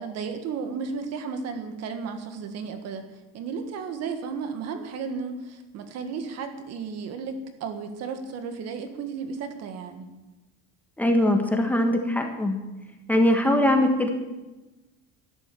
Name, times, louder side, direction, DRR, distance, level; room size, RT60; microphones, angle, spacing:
voice 1, 0.0-3.0 3.3-10.1, right 5 dB, 50° right, 8 dB, 1.8 m, -34 dB
voice 2, 11.0-12.6 13.1-14.1, left 1 dB, 5° left, 3 dB, 1.5 m, -21 dB
12.0 x 11.0 x 7.6 m, 1.1 s
cardioid pair, 155°, 32 cm